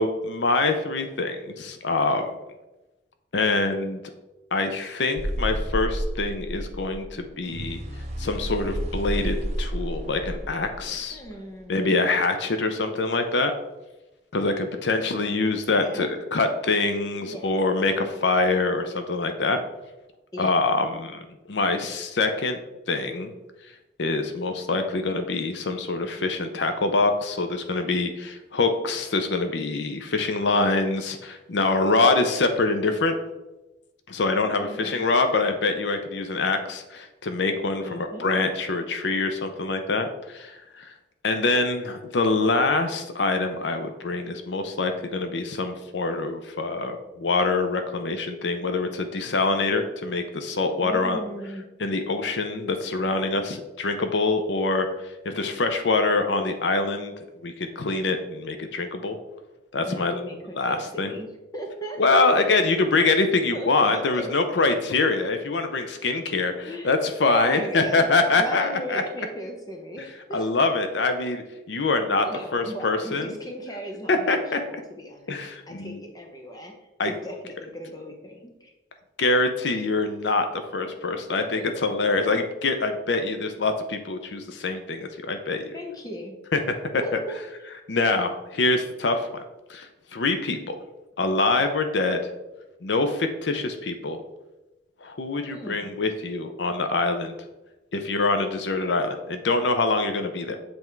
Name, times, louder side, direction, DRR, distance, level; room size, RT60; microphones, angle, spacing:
voice 1, 0.0-2.3 3.3-4.0 4.5-7.8 8.2-11.2 11.7-13.5 14.3-19.6 20.4-21.2 21.5-22.6 22.9-23.3 24.0-33.1 34.1-40.9 41.2-51.2 51.8-54.9 55.2-57.1 57.4-59.2 59.7-60.2 60.6-61.1 62.0-69.0 70.3-72.3 72.5-73.4 74.1-74.6 75.3-76.0 77.0-77.1 79.2-85.7 86.5-86.6 87.9-89.4 89.7-90.8 91.2-92.2 92.8-94.2 95.0-97.3 97.9-100.6, left 3 dB, 75° left, 7 dB, 0.6 m, -25 dB
sound 1, 5.2-11.2, right 1 dB, 35° right, 0.8 m, -31 dB
voice 2, 11.1-12.0 15.7-16.1 17.2-17.5 20.3-20.5 34.6-35.1 37.8-38.3 50.8-51.7 59.8-62.4 63.5-64.3 64.6-64.8 66.6-66.9 67.2-70.5 72.2-75.4 75.7-76.7 77.0-78.7 81.3-81.9 85.7-86.4 87.0-87.4 95.4-95.9, equal, 20° left, 2 dB, 0.9 m, -37 dB
7.7 x 3.5 x 4.5 m, 1.0 s
head